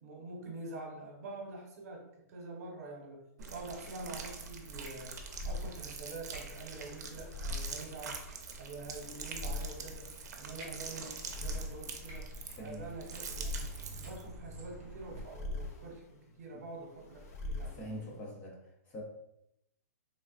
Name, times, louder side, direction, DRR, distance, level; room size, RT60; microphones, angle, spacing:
voice 1, 0.0-3.2 3.5-5.1 5.4-8.2 8.6-10.1 10.4-12.3 12.6-13.7 13.9-16.0 16.4-18.2, right 2 dB, 60° right, 0 dB, 1.0 m, -46 dB
sound 1, 3.4-15.2, right 2 dB, 30° right, 0.6 m, -50 dB
sound 2, 3.4-14.2, right 5 dB, 75° right, 0.5 m, -45 dB
sound 3, 3.8-18.3, left 2 dB, 65° left, 0.7 m, -44 dB
voice 2, 12.5-12.9 17.6-19.0, left 1 dB, 20° left, -2 dB, 0.5 m, -44 dB
3.3 x 2.3 x 2.4 m, 0.80 s
hypercardioid pair, 160°, 9 cm